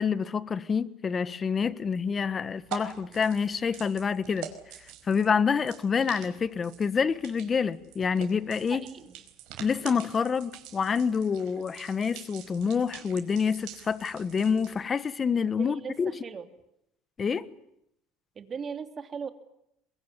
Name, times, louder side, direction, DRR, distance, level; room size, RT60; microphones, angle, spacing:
voice 1, 0.0-4.5 5.0-8.8 9.6-16.1 17.2-17.5, left 6 dB, 30° left, 1.3 m, -27 dB
sound 1, 1.6-14.8, right 11 dB, 70° right, 4.9 m, -46 dB
voice 2, 8.7-9.1 15.6-16.5 18.3-19.3, right 6 dB, 30° right, 3.0 m, -38 dB
22.5 x 22.5 x 9.9 m
supercardioid pair, 110°, 0 cm